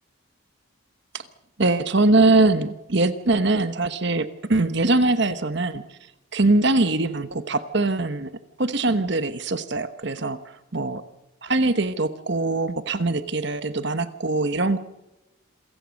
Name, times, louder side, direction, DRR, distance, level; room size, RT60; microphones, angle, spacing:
voice 1, 1.6-5.8 6.3-8.3 8.6-10.4 10.7-11.0 11.4-14.8, right 2 dB, 55° right, 11 dB, 1.1 m, -22 dB
27.5 x 15.5 x 6.5 m, 0.98 s
head